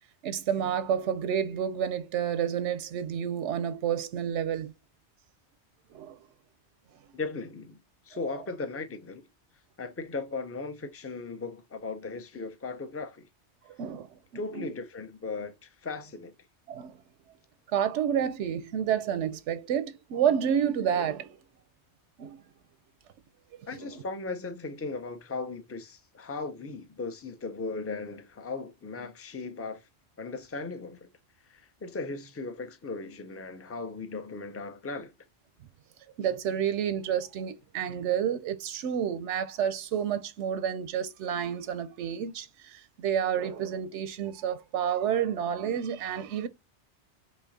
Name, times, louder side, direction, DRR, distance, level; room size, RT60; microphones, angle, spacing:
voice 1, 0.2-4.7 5.9-6.2 13.7-14.7 16.7-17.0 17.7-21.4 22.2-22.4 23.8-24.0 36.2-46.5, right 8 dB, 90° right, 0.9 m, -30 dB
voice 2, 7.1-7.8 8.1-9.2 9.8-13.3 14.3-16.3 23.7-29.8 30.2-31.1 31.5-35.1, left 3 dB, 20° left, 0.4 m, -37 dB
4.1 x 2.9 x 4.0 m
omnidirectional pair, 1.2 m